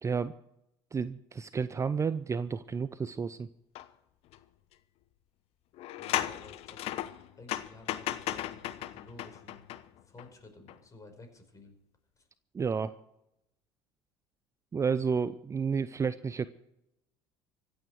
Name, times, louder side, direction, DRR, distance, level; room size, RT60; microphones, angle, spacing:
voice 1, 0.0-0.3 0.9-3.5 12.5-13.0 14.7-16.5, right 5 dB, 25° right, 14 dB, 0.6 m, -31 dB
sound 1, 3.7-3.9 4.3-4.4 5.7-10.3 10.7-10.8, left 13 dB, 55° left, 1.0 m, -36 dB
voice 2, 6.0-6.8 7.4-9.7 10.0-11.8 12.2-12.3, left 2 dB, 25° left, 5 dB, 5.4 m, -53 dB
25.0 x 8.7 x 4.7 m, 0.82 s
figure-of-eight pair, 65°, 13 cm